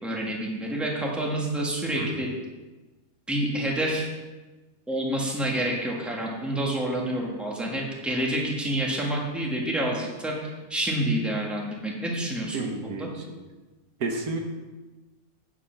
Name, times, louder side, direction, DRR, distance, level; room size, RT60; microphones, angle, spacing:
voice 1, 0.0-2.3 3.3-4.1 4.9-12.7 13.0-13.1, right 1 dB, ahead, -3 dB, 1.6 m, -28 dB
voice 2, 12.5-13.1 14.0-14.4, right 3 dB, 75° right, 2 dB, 1.7 m, -30 dB
9.6 x 6.1 x 5.8 m, 1.2 s
omnidirectional pair, 1.6 m